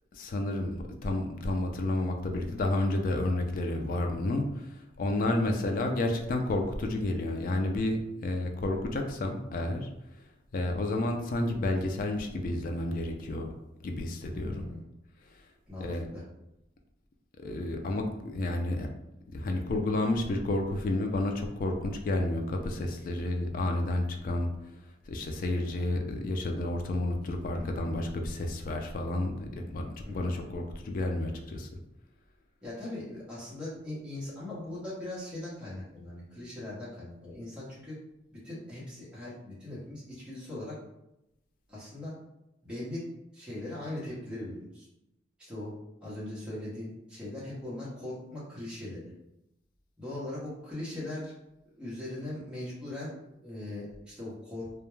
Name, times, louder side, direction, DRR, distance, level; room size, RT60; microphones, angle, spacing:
voice 1, 0.1-9.9 10.5-13.5 13.8-14.6 15.8-16.1 17.4-18.9 19.3-24.5 25.1-29.9 30.1-31.7, left 2 dB, 45° left, 3 dB, 0.3 m, -30 dB
voice 2, 14.5-14.8 15.7-16.2 25.7-25.9 30.0-30.3 32.6-38.0 38.3-40.7 41.7-42.1 42.6-43.1 43.3-44.9 45.4-45.7 46.0-49.0 50.0-51.3 51.8-53.1 53.4-54.7, left 1 dB, 5° right, -9 dB, 0.7 m, -40 dB
2.2 x 2.1 x 3.0 m, 0.89 s
head